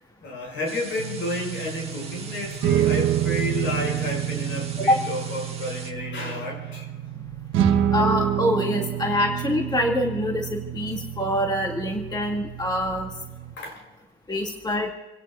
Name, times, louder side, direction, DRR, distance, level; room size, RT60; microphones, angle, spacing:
voice 1, 0.2-6.9 7.6-7.7 13.6-13.8, left 2 dB, 75° left, -1 dB, 6.7 m, -31 dB
sound 1, 0.7-5.9, right 4 dB, 30° right, 1.9 m, -41 dB
sound 2, 1.0-13.5, right 10 dB, 90° right, 1.1 m, -28 dB
voice 2, 7.9-13.1 14.3-14.9, left 1 dB, 20° left, 0 dB, 2.4 m, -25 dB
28.5 x 17.0 x 2.5 m, 1.1 s
cardioid pair, 90°, 20 cm